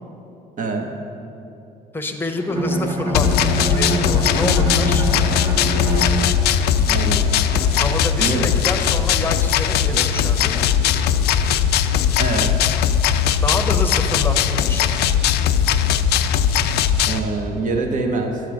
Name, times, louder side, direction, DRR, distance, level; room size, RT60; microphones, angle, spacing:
voice 1, 0.6-0.9 6.8-7.3 8.2-8.5 9.9-10.0 12.2-12.5 17.1-18.4, right 3 dB, 50° right, 4 dB, 1.2 m, -24 dB
voice 2, 1.9-5.1 7.8-10.7 13.3-14.9, left 2 dB, 10° left, 5 dB, 0.8 m, -27 dB
Bowed string instrument, 2.4-6.7, right 1 dB, 25° right, 1.5 m, -24 dB
sound 1, 2.5-17.8, right 2 dB, 70° right, 1.2 m, -39 dB
sound 2, 3.1-17.2, left 9 dB, 75° left, 0.4 m, -19 dB
10.5 x 4.9 x 7.6 m, 2.9 s
cardioid pair, 110°, 17 cm